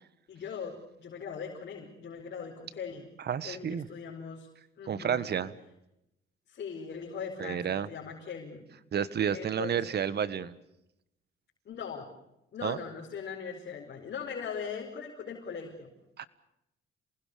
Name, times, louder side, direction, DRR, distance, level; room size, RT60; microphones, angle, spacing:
voice 1, 0.3-3.1 3.4-4.5 4.8-5.3 6.5-8.7 9.3-10.0 11.6-12.1 12.5-15.9, left 6 dB, 60° left, 0 dB, 4.8 m, -40 dB
voice 2, 3.2-3.9 4.9-5.5 7.4-7.9 8.9-10.6 12.6-12.8 16.2-16.3, right 8 dB, 55° right, 16 dB, 1.5 m, -30 dB
27.5 x 20.0 x 6.8 m, 0.86 s
cardioid pair, 90°, 20 cm